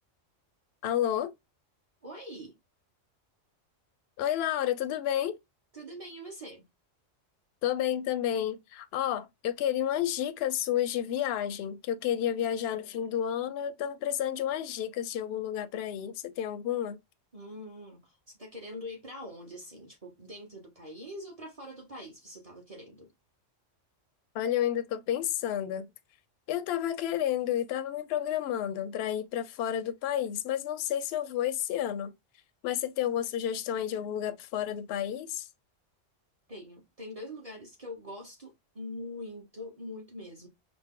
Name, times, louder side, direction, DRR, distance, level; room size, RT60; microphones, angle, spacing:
voice 1, 0.8-1.3 4.2-5.4 7.6-17.0 24.3-25.9 26.5-32.1 32.6-35.5, left 10 dB, 65° left, 0.7 m, -31 dB
voice 2, 2.0-2.5 5.7-6.6 17.3-23.1 36.5-40.5, left 1 dB, 30° right, 0.9 m, -43 dB
5.0 x 2.0 x 3.7 m
omnidirectional pair, 1.3 m